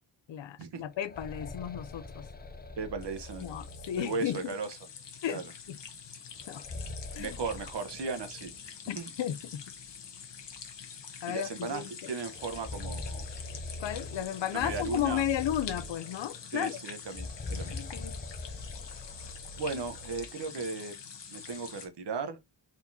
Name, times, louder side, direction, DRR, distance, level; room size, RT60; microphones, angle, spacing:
voice 1, 0.3-2.2 3.4-4.5 5.2-5.4 5.7-5.8 6.5-6.6 7.2-7.4 8.9-9.6 11.2-12.1 13.8-16.8 17.7-18.2, left 11 dB, 90° left, 0.6 m, -34 dB
sound 1, 0.8-4.6 6.4-8.6 8.9-9.0 9.9-10.0 10.4-10.6 12.2-16.4 17.0-20.4, left 2 dB, 20° left, 0.6 m, -42 dB
voice 2, 2.8-3.6 4.0-4.7 5.3-5.4 7.2-8.5 9.0-9.1 11.3-13.2 14.5-15.2 16.5-17.8 19.6-20.9 21.3-22.5, right 4 dB, 70° right, 1.1 m, -36 dB
sound 2, 3.0-21.9, left 7 dB, 75° left, 1.1 m, -46 dB
4.2 x 4.2 x 2.7 m
wide cardioid pair, 95°, 43 cm